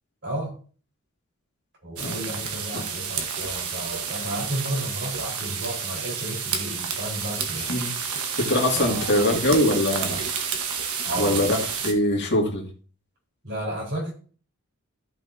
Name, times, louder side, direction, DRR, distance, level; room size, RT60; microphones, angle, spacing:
voice 1, 0.2-0.5 1.8-7.7 8.7-9.2 11.0-11.5 13.4-14.1, right 1 dB, 55° right, -3 dB, 4.5 m, -32 dB
sound 1, 2.0-11.9, right 6 dB, 90° right, 1.4 m, -30 dB
voice 2, 7.5-10.2 11.1-11.6 11.8-12.7, left 1 dB, 55° left, -1 dB, 2.3 m, -23 dB
14.0 x 5.7 x 2.8 m, 0.40 s
head